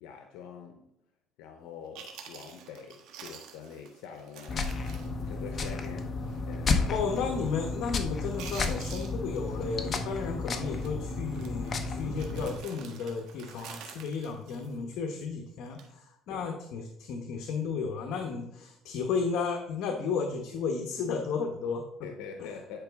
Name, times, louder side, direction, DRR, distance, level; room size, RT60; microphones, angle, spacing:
voice 1, 0.0-0.8 1.4-4.7 5.3-7.3 16.3-16.5 22.0-22.8, left 6 dB, 90° left, 4 dB, 0.8 m, -45 dB
Chewing mastication, 1.6-1.7 2.0-6.0 6.3-6.4 6.9-7.2 7.5-7.9 8.2-9.8 10.0-10.3 10.7-10.9 11.3-15.2 15.7-15.9, right 7 dB, 75° right, 1.4 m, -48 dB
sound 1, 4.5-12.6, left 3 dB, 35° left, 1.0 m, -32 dB
voice 2, 6.9-21.8 22.4-22.5, left 5 dB, 70° left, 3 dB, 1.0 m, -33 dB
10.0 x 4.9 x 3.6 m, 0.83 s
cardioid pair, 120°, 0 cm